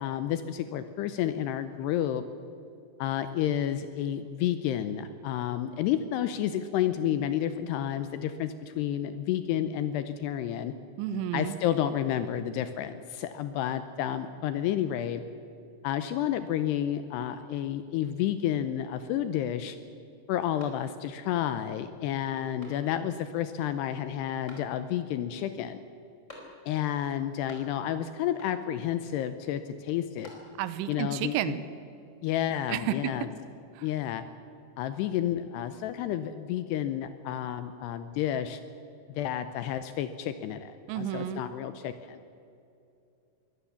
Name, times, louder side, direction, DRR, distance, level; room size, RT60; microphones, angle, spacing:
voice 1, 0.0-2.2 3.0-10.7 11.3-15.2 15.8-19.8 20.3-25.8 26.7-30.3 30.9-31.6 32.2-33.3 33.8-34.2 34.8-38.6 39.2-42.2, left 11 dB, 80° left, 11 dB, 2.5 m, -30 dB
voice 2, 11.0-11.6 30.6-31.6 32.7-33.3 33.8-33.9 40.9-41.4, right 10 dB, 80° right, 13 dB, 3.1 m, -31 dB
sound 1, 20.6-21.3 21.7-21.8 22.6-23.2 24.5-25.1 26.3-26.9 27.1-28.0 28.4-28.9 29.9-30.8, left 1 dB, 15° left, 4.1 m, -51 dB
23.0 x 17.5 x 7.1 m, 2.6 s
omnidirectional pair, 5.4 m